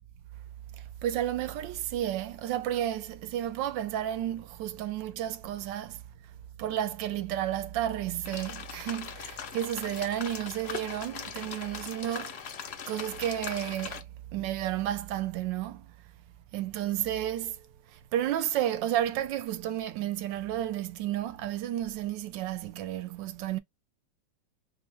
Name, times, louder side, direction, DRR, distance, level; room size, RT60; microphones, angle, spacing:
voice 1, 0.8-6.0 6.6-12.4 12.9-15.9 16.5-23.6, right 12 dB, 85° right, 1.3 m, -32 dB
sound 1, 8.2-14.0, left 7 dB, 85° left, 0.5 m, -40 dB
4.3 x 2.0 x 3.3 m
omnidirectional pair, 2.0 m